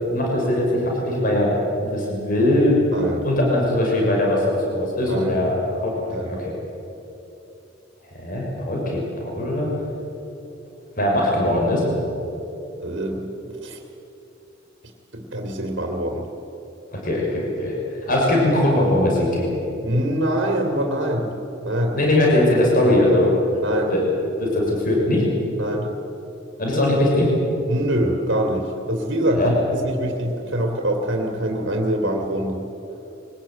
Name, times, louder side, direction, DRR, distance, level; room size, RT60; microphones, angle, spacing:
voice 1, 0.1-2.8 3.2-5.9 6.3-6.5 8.1-9.7 11.0-11.8 16.9-17.7 18.1-19.5 21.9-23.5 23.9-24.0 24.4-25.3 26.6-27.3 29.3-29.5, left 1 dB, 45° left, -2 dB, 6.0 m, -20 dB
voice 2, 2.9-3.2 5.1-5.4 6.1-6.3 12.8-13.8 15.1-16.3 19.8-21.3 21.6-22.0 23.6-23.9 25.6-25.9 27.7-32.6, right 1 dB, 70° right, 2 dB, 2.6 m, -24 dB
23.0 x 19.0 x 8.8 m, 3.0 s
head